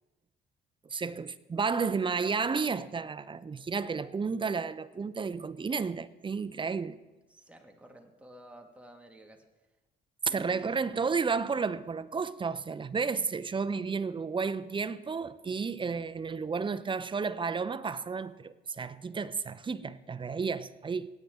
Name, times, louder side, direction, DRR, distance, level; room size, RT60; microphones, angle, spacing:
voice 1, 0.9-7.0 10.3-21.1, right 5 dB, 25° right, 0.5 m, -32 dB
voice 2, 7.3-9.4 10.3-10.9, right 1 dB, 5° right, 1.6 m, -52 dB
17.5 x 9.2 x 3.6 m
cardioid pair, 90°, 20 cm